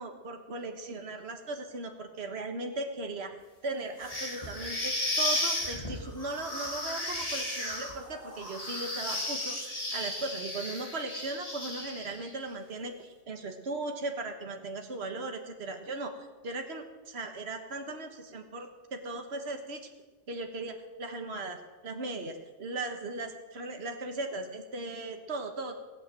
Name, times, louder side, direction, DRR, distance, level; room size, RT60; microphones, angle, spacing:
voice 1, 0.0-3.4 3.6-16.1 16.4-19.8 20.3-21.6 21.8-25.8, right 2 dB, 60° right, 5 dB, 1.7 m, -38 dB
sound 1, 4.0-12.3, left 1 dB, 30° left, 2.5 m, -34 dB
19.0 x 9.2 x 7.7 m, 1.3 s
omnidirectional pair, 1.2 m